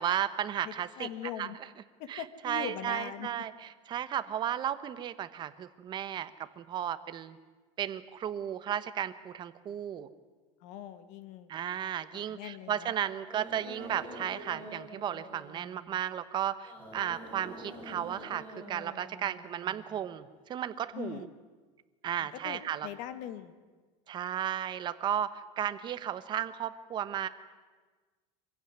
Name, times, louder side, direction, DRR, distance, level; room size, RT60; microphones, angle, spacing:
voice 1, 0.0-1.1 1.4-1.5 2.1-7.4 7.8-10.1 11.5-21.3 22.0-22.9 24.1-27.3, right 10 dB, 25° right, 13 dB, 1.0 m, -34 dB
voice 2, 0.6-1.6 2.0-3.5 10.6-11.5 12.1-12.9 20.9-21.3 22.2-23.5, left 10 dB, 50° left, 12 dB, 1.6 m, -41 dB
sound 1, 13.3-16.0 16.6-20.2, right 1 dB, 10° left, 5.3 m, -47 dB
25.0 x 15.5 x 9.7 m, 1.4 s
supercardioid pair, 160°, 17 cm